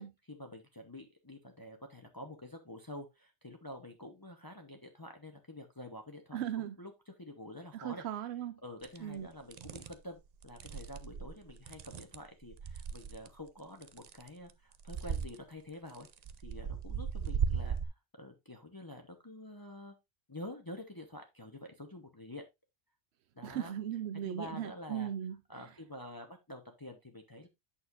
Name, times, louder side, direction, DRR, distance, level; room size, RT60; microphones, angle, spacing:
voice 1, 0.3-6.9 7.2-8.0 8.6-16.1 16.4-17.8 18.2-20.0 20.3-22.4 23.4-23.7 24.2-25.1 25.5-27.5, left 1 dB, 20° left, 0.9 m, -48 dB
voice 2, 6.3-6.8 7.7-8.6 9.0-9.3 23.4-25.7, right 10 dB, 85° right, 0.9 m, -38 dB
sound 1, 8.8-9.0 9.5-9.9 10.4-13.3 13.8-14.5 14.8-15.3 15.9-17.9, right 7 dB, 50° right, 0.6 m, -37 dB
8.5 x 6.5 x 2.5 m
omnidirectional pair, 1.1 m